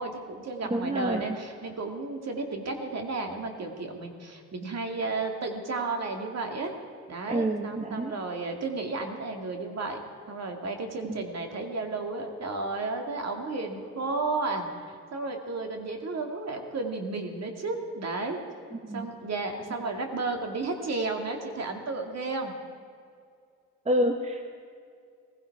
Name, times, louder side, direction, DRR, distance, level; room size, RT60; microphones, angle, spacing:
voice 1, 0.0-6.7 7.1-10.0 10.3-14.7 15.1-18.4 18.9-22.6, right 3 dB, 45° right, 4 dB, 2.4 m, -33 dB
voice 2, 0.6-1.3 7.3-8.1 11.1-11.2 18.7-19.1 23.8-24.5, right 1 dB, 15° right, 4 dB, 1.2 m, -28 dB
18.5 x 15.5 x 4.8 m, 2.3 s
supercardioid pair, 65°, 38 cm